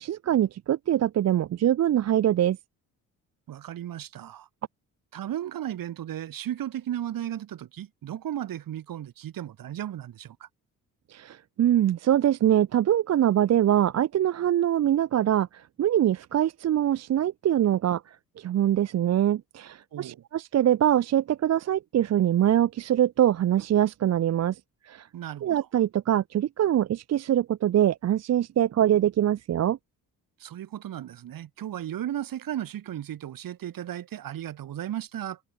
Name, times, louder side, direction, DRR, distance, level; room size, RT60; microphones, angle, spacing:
voice 1, 0.0-2.6 11.1-25.1 25.4-29.8, right 11 dB, 45° right, 0.6 m, -23 dB
voice 2, 3.5-4.5 5.1-10.5 19.9-20.2 25.1-25.5 30.4-35.4, right 11 dB, 65° right, 3.2 m, -35 dB
supercardioid pair, 75°, 36 cm